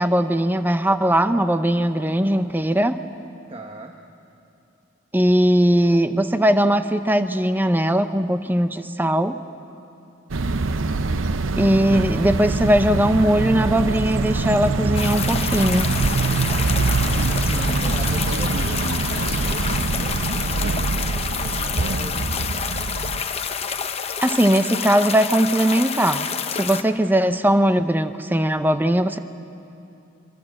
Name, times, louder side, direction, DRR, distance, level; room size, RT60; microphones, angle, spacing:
voice 1, 0.0-3.0 5.1-9.4 11.6-16.0 24.2-26.3 26.5-29.2, equal, 10° right, 10 dB, 0.6 m, -19 dB
voice 2, 3.5-4.0 16.9-22.7, right 1 dB, 25° right, 4 dB, 1.0 m, -39 dB
sound 1, 10.3-23.2, right 3 dB, 70° right, 0.7 m, -24 dB
sound 2, 14.9-26.8, left 6 dB, 30° left, 0.9 m, -28 dB
25.0 x 24.5 x 7.6 m, 2.9 s
head